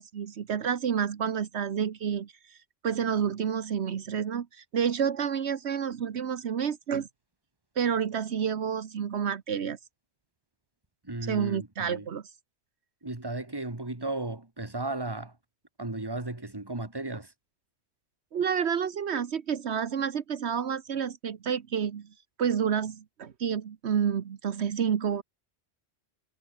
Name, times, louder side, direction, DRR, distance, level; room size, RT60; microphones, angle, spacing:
voice 1, 0.0-2.6 2.8-7.1 7.8-9.8 11.3-12.2 18.3-22.1 22.4-25.2, right 7 dB, 80° right, 1.3 m, -29 dB
voice 2, 11.0-12.1 13.0-15.3 15.8-17.3, right 2 dB, 20° right, 2.1 m, -35 dB
omnidirectional pair, 1.1 m